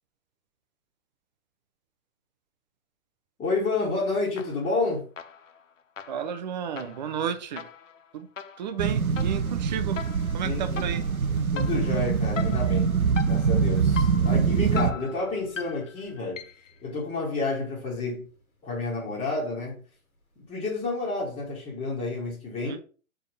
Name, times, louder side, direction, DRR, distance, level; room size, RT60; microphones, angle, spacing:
voice 1, 3.4-5.0 10.4-10.8 11.5-12.9 13.3-16.5 16.8-18.3 18.6-19.8 20.5-22.8, left 3 dB, 15° left, 1.8 m, -30 dB
sound 1, 4.4-4.8 5.2-16.8, left 7 dB, 65° left, 0.7 m, -41 dB
voice 2, 6.1-7.7 8.1-8.3 8.6-11.0 22.6-22.8, right 8 dB, 35° right, 0.7 m, -33 dB
sound 2, 8.8-14.9, right 6 dB, 85° right, 0.7 m, -24 dB
sound 3, 12.4-20.8 21.0-21.2, equal, 80° left, 1.7 m, -49 dB
5.0 x 3.7 x 5.2 m
figure-of-eight pair, 120°, 42 cm